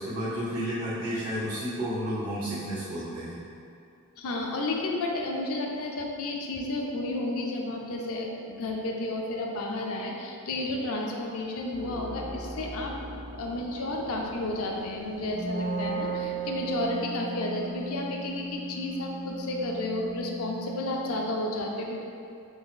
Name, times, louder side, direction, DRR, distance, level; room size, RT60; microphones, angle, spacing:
voice 1, 0.0-3.4, equal, 85° right, -14 dB, 1.3 m, -31 dB
voice 2, 4.2-12.9 13.3-22.0, left 2 dB, 70° left, 0 dB, 0.5 m, -32 dB
sound 1, 11.7-16.8, equal, 25° right, 0.6 m, -43 dB
Wind instrument woodwind instrument, 15.3-21.0, right 4 dB, 5° right, 1.5 m, -35 dB
3.8 x 3.4 x 2.4 m, 2.5 s
head